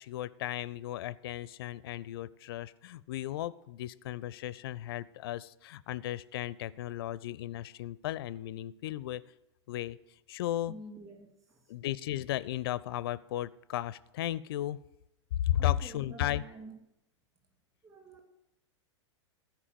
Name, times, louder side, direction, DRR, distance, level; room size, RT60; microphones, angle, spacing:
voice 1, 0.0-9.2 9.7-10.0 10.3-10.7 11.7-14.8 15.4-16.4, left 13 dB, 50° left, 18 dB, 0.4 m, -35 dB
voice 2, 10.7-11.7 15.5-16.8 17.8-18.2, right 2 dB, 20° right, 3 dB, 2.2 m, -49 dB
13.5 x 4.8 x 7.6 m, 0.84 s
figure-of-eight pair, 100°, 16 cm